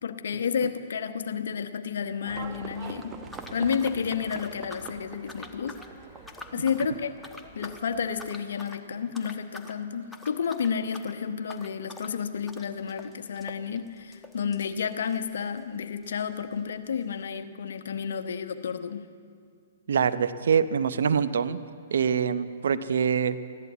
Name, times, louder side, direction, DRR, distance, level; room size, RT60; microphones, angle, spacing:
voice 1, 0.0-3.2 3.5-5.8 6.5-7.1 7.5-19.1, left 7 dB, 70° left, 9 dB, 1.0 m, -31 dB
Livestock farm animals working animals, 2.2-8.3, right 5 dB, 20° right, 1.1 m, -44 dB
Dog - Drinking, 3.3-5.0 5.3-5.9 6.2-6.9 7.2-7.8 8.2-8.8 9.1-9.8 10.1-15.7 16.0-16.1 16.3-16.4 17.1-17.2, left 2 dB, 5° left, 1.1 m, -46 dB
voice 2, 19.9-21.6 21.9-23.4, right 7 dB, 70° right, 12 dB, 0.7 m, -25 dB
15.0 x 11.5 x 8.3 m, 2.3 s
hypercardioid pair, 125°, 0 cm